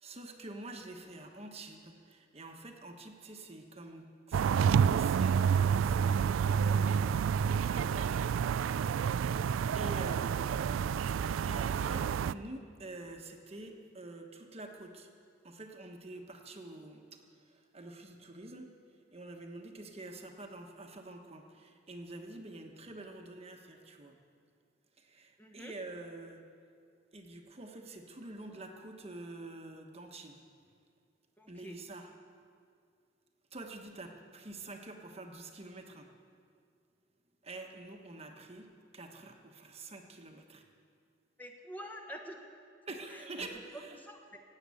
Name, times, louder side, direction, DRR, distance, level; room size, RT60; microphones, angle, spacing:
voice 1, 0.0-7.2 7.6-9.5 9.7-10.9 11.4-15.1 15.4-17.2 17.5-18.7 19.1-24.2 25.0-26.4 27.1-30.4 31.5-32.1 33.5-36.1 37.4-38.7 38.9-40.6 42.9-44.0, right 2 dB, 30° right, 3 dB, 1.3 m, -47 dB
sound 1, 4.3-12.3, right 7 dB, 90° right, 0.3 m, -29 dB
voice 2, 25.4-25.7 31.4-31.7 41.4-42.4 43.1-43.5 43.9-44.4, equal, 10° left, 2 dB, 1.1 m, -47 dB
17.0 x 8.9 x 8.5 m, 2.2 s
head